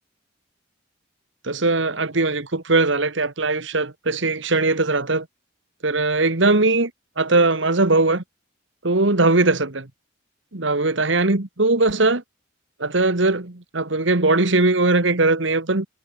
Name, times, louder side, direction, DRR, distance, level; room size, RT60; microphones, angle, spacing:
voice 1, 1.4-5.3 5.8-6.9 7.2-8.2 8.8-9.9 10.5-12.2 12.8-15.9, right 2 dB, 70° right, 1.8 m, -20 dB
head